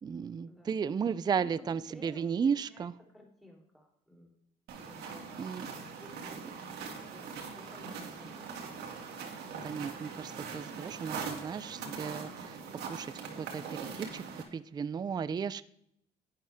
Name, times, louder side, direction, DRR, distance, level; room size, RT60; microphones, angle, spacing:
voice 1, 0.0-2.9 5.4-5.7 9.6-12.6 12.9-14.2 14.5-15.6, right 6 dB, 25° right, 16 dB, 0.4 m, -34 dB
voice 2, 1.4-2.9 3.1-4.4 4.8-8.4, equal, ahead, 0 dB, 3.3 m, -55 dB
sound 1, 4.7-14.4, right 5 dB, 80° right, 2.5 m, -42 dB
11.5 x 9.1 x 3.5 m, 0.73 s
cardioid pair, 110°, 17 cm